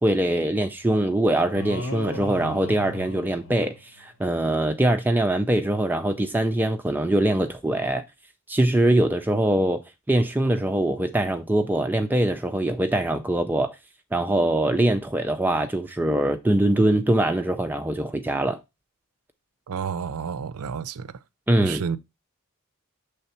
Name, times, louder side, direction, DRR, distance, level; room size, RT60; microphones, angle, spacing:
voice 1, 0.0-8.0 8.5-9.8 10.1-13.8 14.1-18.6 21.5-21.8, right 1 dB, 10° right, 0.4 m, -23 dB
sound 1, 1.5-4.1, left 1 dB, 60° left, 0.9 m, -36 dB
voice 2, 19.7-21.1 21.6-22.0, right 6 dB, 75° right, 0.5 m, -30 dB
6.8 x 3.4 x 4.2 m
head